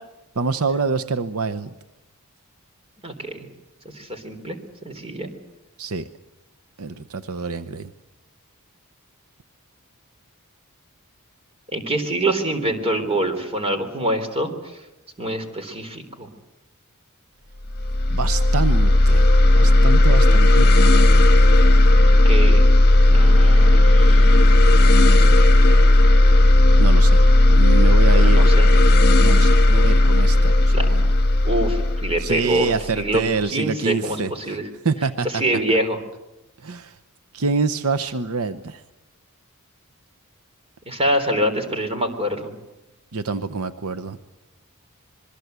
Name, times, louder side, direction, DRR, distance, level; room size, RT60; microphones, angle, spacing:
voice 1, 0.4-1.7 5.8-6.1 6.8-7.9 18.1-19.3 19.5-20.9 26.8-27.2 27.5-28.5 29.2-31.1 32.2-34.6 34.8-35.3 35.7-35.8 36.6-37.0 37.3-38.8 43.1-44.2, right 4 dB, 70° right, 10 dB, 0.8 m, -26 dB
voice 2, 3.0-3.5 3.9-4.6 4.8-5.3 11.7-14.8 15.2-16.3 22.2-22.6 23.1-24.5 28.1-28.7 30.7-30.9 31.4-34.7 35.2-36.0 40.9-42.5, right 1 dB, 25° right, 6 dB, 3.6 m, -25 dB
sound 1, 17.7-33.1, left 1 dB, 45° left, 1.5 m, -14 dB
26.0 x 22.5 x 8.1 m, 0.95 s
head